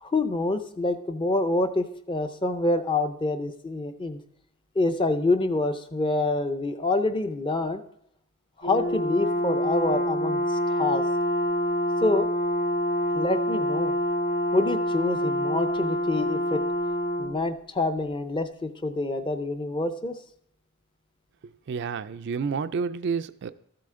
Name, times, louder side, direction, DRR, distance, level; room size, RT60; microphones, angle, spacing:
voice 1, 0.0-4.2 4.8-7.8 8.6-11.0 12.0-12.3 13.1-13.9 14.5-16.6 17.2-20.2, left 2 dB, 20° left, 8 dB, 0.6 m, -26 dB
Brass instrument, 8.6-17.3, equal, 45° left, 2.5 m, -26 dB
voice 2, 21.7-23.5, right 5 dB, 55° right, 11 dB, 0.4 m, -29 dB
13.5 x 7.7 x 3.7 m, 0.72 s
head